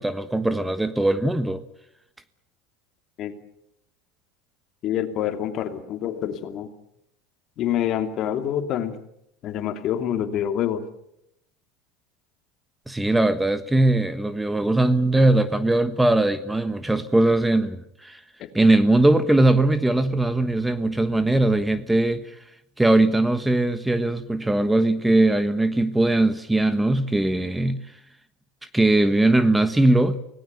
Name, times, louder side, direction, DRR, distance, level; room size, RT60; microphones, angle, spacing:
voice 1, 0.0-1.6 12.9-18.2 18.5-22.3 22.8-27.8 28.7-30.2, right 2 dB, 5° right, 12 dB, 1.3 m, -20 dB
voice 2, 4.8-6.7 7.6-9.0 9.4-10.9 18.4-18.5, left 10 dB, 50° left, 7 dB, 2.6 m, -26 dB
24.5 x 18.5 x 8.2 m, 0.76 s
supercardioid pair, 100°, 0 cm